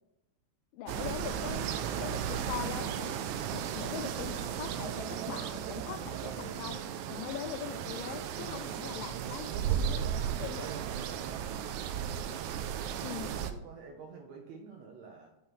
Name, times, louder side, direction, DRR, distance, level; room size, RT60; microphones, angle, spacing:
voice 1, 0.7-1.7 2.0-6.8 7.1-10.9 13.0-13.3, left 10 dB, 85° left, 10 dB, 2.3 m, -42 dB
sound 1, 0.9-13.5, right 9 dB, 85° right, 1.7 m, -35 dB
voice 2, 12.2-12.6 13.1-15.3, right 5 dB, 70° right, 2 dB, 1.7 m, -50 dB
5.9 x 5.6 x 6.1 m, 0.90 s
omnidirectional pair, 4.0 m